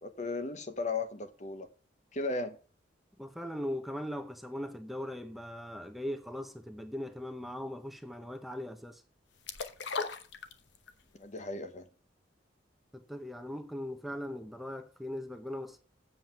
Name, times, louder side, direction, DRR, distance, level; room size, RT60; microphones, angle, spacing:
voice 1, 0.0-1.7 2.1-2.6 11.1-11.9, left 3 dB, 40° left, 1.0 m, -36 dB
voice 2, 3.2-9.0 12.9-15.8, left 1 dB, ahead, 0.7 m, -39 dB
sound 1, 9.5-11.0 11.4-11.5, left 4 dB, 70° left, 0.9 m, -36 dB
7.6 x 7.5 x 5.8 m
head